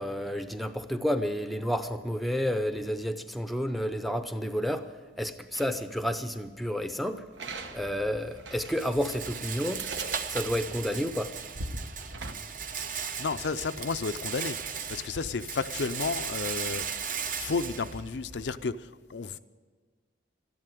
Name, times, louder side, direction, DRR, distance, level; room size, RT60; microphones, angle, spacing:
voice 1, 0.0-4.9 5.2-7.2 7.7-9.8 10.3-11.3, equal, ahead, 9 dB, 0.6 m, -30 dB
sound 1, 5.5-5.8 7.4-8.8 9.3-9.4 9.7-12.4, right 3 dB, 85° right, 1.1 m, -40 dB
Rattle, 7.6-18.7, right 6 dB, 45° right, 0.8 m, -37 dB
voice 2, 13.2-14.6 14.9-16.9 17.4-19.4, left 4 dB, 75° left, 10 dB, 0.5 m, -32 dB
13.5 x 11.0 x 9.1 m, 1.5 s
head